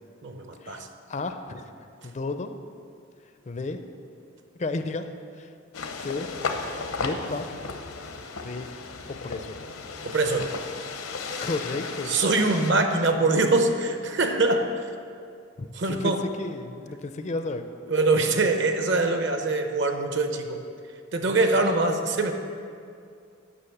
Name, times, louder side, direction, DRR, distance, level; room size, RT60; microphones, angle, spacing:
voice 1, 0.2-0.9 10.0-10.5 12.1-14.7 15.7-16.2 17.9-20.6 21.1-22.3, right 3 dB, 55° right, 6 dB, 0.8 m, -23 dB
voice 2, 1.1-1.7 2.0-2.5 3.5-3.8 4.6-5.1 5.4-5.5 6.0-6.3 7.0-7.4 8.4-8.7 9.2-9.6 11.4-12.1 15.6-16.1 16.4-17.7, left 3 dB, 35° left, 8 dB, 0.4 m, -32 dB
sound 1, 5.7-12.7, left 4 dB, 80° left, 0.8 m, -35 dB
9.8 x 6.0 x 7.2 m, 2.4 s
head